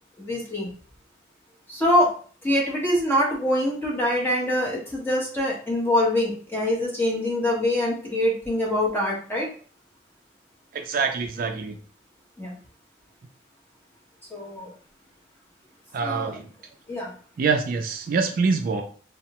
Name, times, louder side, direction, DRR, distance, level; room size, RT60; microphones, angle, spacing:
voice 1, 0.2-0.7 1.7-2.1 2.4-9.5 12.4-12.5 14.3-14.7 16.0-16.3 16.9-17.1, left 1 dB, 10° left, -4 dB, 1.0 m, -24 dB
voice 2, 10.7-11.8 15.9-16.5 17.4-18.8, right 4 dB, 50° right, 5 dB, 0.3 m, -25 dB
3.4 x 2.1 x 2.8 m, 0.43 s
head